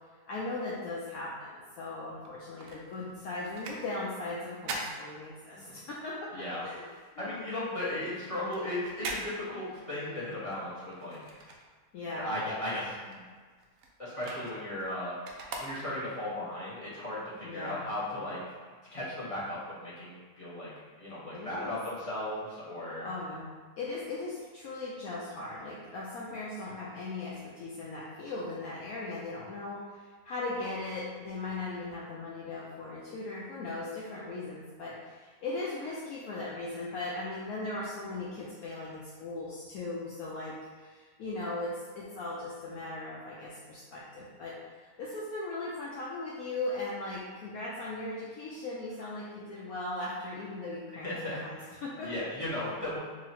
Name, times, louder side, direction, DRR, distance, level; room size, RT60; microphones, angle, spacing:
voice 1, 0.3-6.3 6.6-6.9 7.2-7.6 11.9-12.3 17.4-17.9 21.3-21.8 23.0-23.5 23.8-52.1, left 2 dB, 70° left, -5 dB, 0.9 m, -38 dB
sound 1, 2.2-5.9 6.2-12.2 12.5-16.3 16.8-16.9, right 2 dB, 80° right, 0.6 m, -43 dB
voice 2, 5.5-5.8 6.3-6.6 7.2-11.2 12.1-13.2 14.0-15.2 15.6-18.4 18.9-20.7 21.0-23.1 51.0-53.0, left 1 dB, 25° left, -10 dB, 0.9 m, -36 dB
3.0 x 2.7 x 4.1 m, 1.5 s
omnidirectional pair, 1.8 m